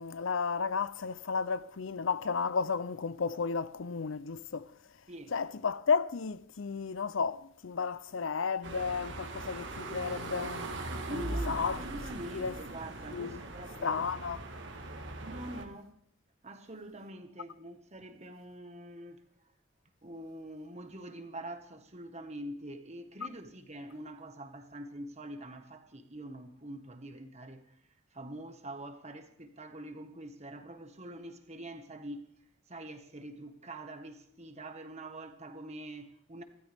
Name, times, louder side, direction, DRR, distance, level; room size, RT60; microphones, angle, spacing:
voice 1, 0.0-4.7 5.3-10.7 11.1-11.8 12.3-12.6 13.1-13.4 13.8-14.4, left 5 dB, 65° left, 0.6 m, -33 dB
sound 1, 8.6-15.6, right 2 dB, 60° right, 1.7 m, -40 dB
voice 2, 11.1-14.1 15.2-16.0 16.4-19.2 20.0-27.8 28.1-32.3 32.7-36.4, right 1 dB, 30° right, 1.5 m, -45 dB
25.0 x 13.0 x 3.5 m
head